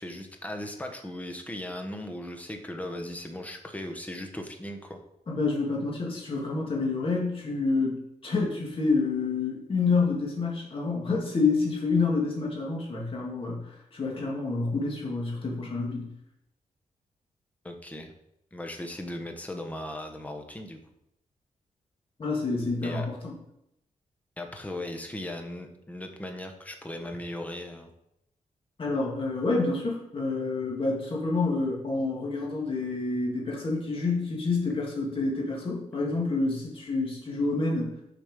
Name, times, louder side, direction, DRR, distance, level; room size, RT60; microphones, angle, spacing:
voice 1, 0.0-5.0 17.6-18.1 18.5-20.8 22.8-23.1 24.4-27.9, left 1 dB, 10° left, 4 dB, 1.1 m, -37 dB
voice 2, 5.3-13.6 13.9-16.1 22.2-23.3 28.8-37.9, left 3 dB, 45° left, -2 dB, 2.3 m, -28 dB
7.2 x 5.3 x 5.1 m, 0.82 s
wide cardioid pair, 120°, 13 cm